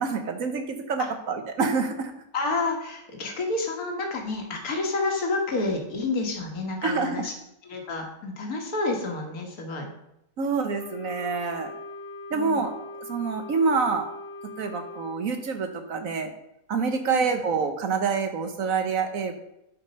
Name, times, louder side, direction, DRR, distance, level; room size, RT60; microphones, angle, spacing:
voice 1, 0.0-2.1 6.8-7.3 10.4-11.7 12.3-12.7 13.1-14.1 14.6-16.3 16.7-19.3, right 5 dB, 55° right, 7 dB, 1.3 m, -27 dB
voice 2, 2.3-7.3 7.6-9.9 12.3-12.6 17.1-17.3, left 3 dB, 55° left, 2 dB, 2.0 m, -29 dB
Wind instrument woodwind instrument, 10.8-15.2, left 3 dB, 85° left, 1.4 m, -40 dB
11.0 x 5.1 x 5.3 m, 0.82 s
omnidirectional pair, 1.9 m